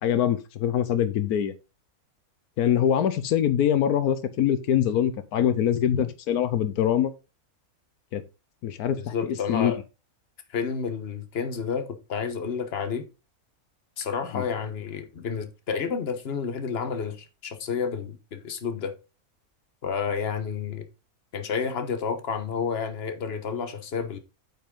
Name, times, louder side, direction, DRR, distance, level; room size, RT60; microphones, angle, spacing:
voice 1, 0.0-1.5 2.6-7.1 8.1-8.2 8.6-9.7 14.3-14.4, left 9 dB, 85° left, 1.3 m, -24 dB
voice 2, 9.0-9.8 10.5-13.0 14.0-18.9 19.8-20.9 21.3-24.2, left 6 dB, 45° left, 1.4 m, -30 dB
8.6 x 6.0 x 3.7 m
omnidirectional pair, 1.6 m